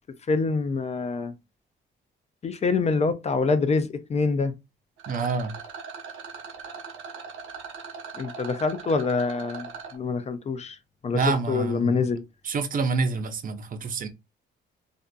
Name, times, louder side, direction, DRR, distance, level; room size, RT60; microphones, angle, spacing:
voice 1, 0.3-1.3 2.4-4.5 8.2-9.7 9.9-10.8 11.0-12.2, left 4 dB, 35° left, 0.4 m, -25 dB
Rattle, 5.0-10.0, right 6 dB, 90° right, 0.7 m, -40 dB
voice 2, 5.1-5.5 11.1-12.0 12.4-14.1, right 4 dB, 45° right, 0.5 m, -27 dB
2.5 x 2.5 x 2.2 m
cardioid pair, 90°, 20 cm